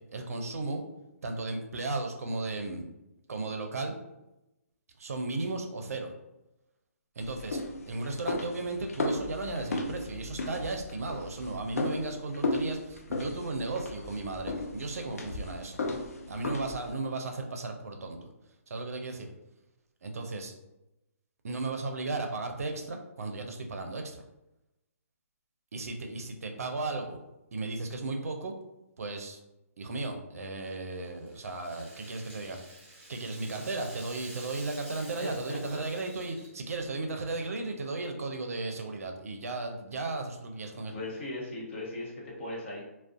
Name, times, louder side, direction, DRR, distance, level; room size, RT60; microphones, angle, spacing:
voice 1, 0.1-0.8 1.2-2.8 3.3-3.9 5.0-6.1 7.2-7.6 7.9-15.8 16.3-18.3 18.7-19.3 20.0-20.5 21.4-24.2 25.7-27.2 27.5-28.5 29.0-29.4 29.8-32.6 33.1-40.9, right 3 dB, 75° right, 4 dB, 0.4 m, -35 dB
sound 1, 7.2-16.9, left 2 dB, 80° left, 0.4 m, -35 dB
Rattle (instrument), 30.6-36.8, right 1 dB, 20° right, 1.1 m, -50 dB
voice 2, 35.2-35.8 40.9-42.8, left 1 dB, 50° left, -3 dB, 0.9 m, -38 dB
2.4 x 2.1 x 2.4 m, 0.94 s
hypercardioid pair, 145°, 8 cm